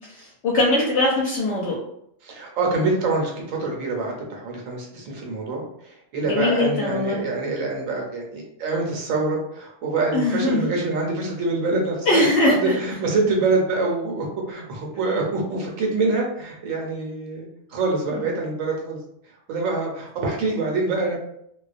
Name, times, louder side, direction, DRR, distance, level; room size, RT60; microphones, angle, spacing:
voice 1, 0.1-1.7 6.2-7.3 10.1-10.6 12.1-12.5 18.1-18.2, left 2 dB, 65° left, -4 dB, 0.8 m, -21 dB
voice 2, 2.2-19.0 19.2-21.2, right 3 dB, 85° right, -1 dB, 1.1 m, -25 dB
2.4 x 2.1 x 2.4 m, 0.74 s
omnidirectional pair, 1.4 m